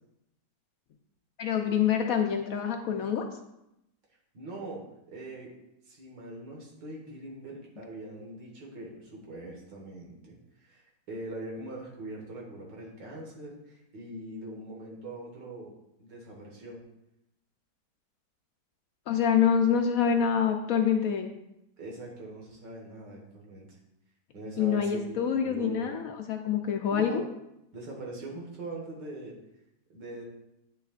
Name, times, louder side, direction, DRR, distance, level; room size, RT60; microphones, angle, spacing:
voice 1, 1.4-3.3 19.1-21.3 24.6-27.2, left 7 dB, 70° left, 4 dB, 0.9 m, -26 dB
voice 2, 4.3-5.5 5.8-15.7 16.0-16.8 21.8-23.8 24.3-25.9 26.9-27.2 27.7-29.4 29.9-30.2, right 1 dB, 90° right, -2 dB, 2.2 m, -42 dB
9.0 x 6.4 x 2.5 m, 0.85 s
omnidirectional pair, 1.9 m